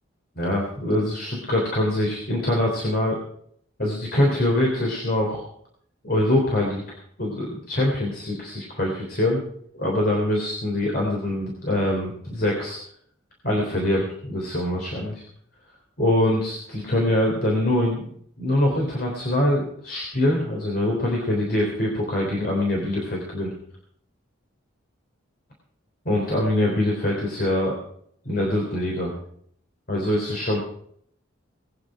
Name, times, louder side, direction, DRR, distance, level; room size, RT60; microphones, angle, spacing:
voice 1, 0.4-3.2 3.8-5.4 6.0-6.8 7.2-9.4 9.7-12.8 13.4-15.2 16.0-23.5 26.1-27.8 28.3-29.1 29.9-30.6, left 1 dB, 45° left, -1 dB, 3.5 m, -24 dB
20.5 x 9.6 x 5.0 m, 0.65 s
head